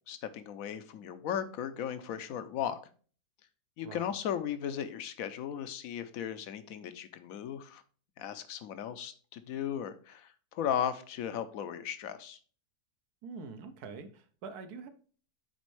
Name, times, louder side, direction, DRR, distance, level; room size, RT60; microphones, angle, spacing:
voice 1, 0.1-2.8 3.8-7.8 8.2-12.4, left 9 dB, 70° left, 11 dB, 1.0 m, -36 dB
voice 2, 13.2-14.9, right 4 dB, 75° right, 9 dB, 1.3 m, -45 dB
8.3 x 4.3 x 3.1 m, 0.42 s
omnidirectional pair, 1.6 m